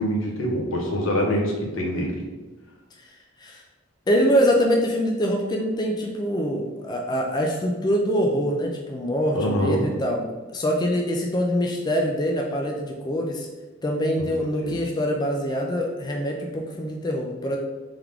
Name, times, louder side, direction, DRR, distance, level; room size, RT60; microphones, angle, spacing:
voice 1, 0.0-2.3 9.3-9.9 14.2-14.3 14.6-14.8, equal, 85° left, -1 dB, 1.0 m, -25 dB
voice 2, 4.1-13.5 13.8-17.6, equal, 20° left, 1 dB, 0.4 m, -24 dB
3.5 x 3.5 x 3.4 m, 1.2 s
head